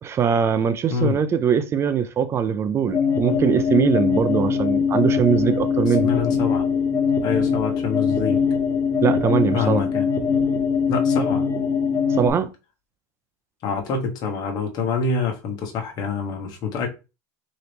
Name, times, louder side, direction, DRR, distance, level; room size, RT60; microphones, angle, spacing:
voice 1, 0.0-6.1 9.0-9.8 12.1-12.5, right 7 dB, 25° right, 0.4 m, -21 dB
sound 1, 2.9-12.3, left 6 dB, 25° left, 0.8 m, -22 dB
voice 2, 5.9-6.6 7.2-8.4 9.5-10.0 10.9-11.5 13.6-16.9, left 5 dB, 40° left, 1.2 m, -26 dB
3.9 x 2.9 x 3.4 m
supercardioid pair, 125°, 10 cm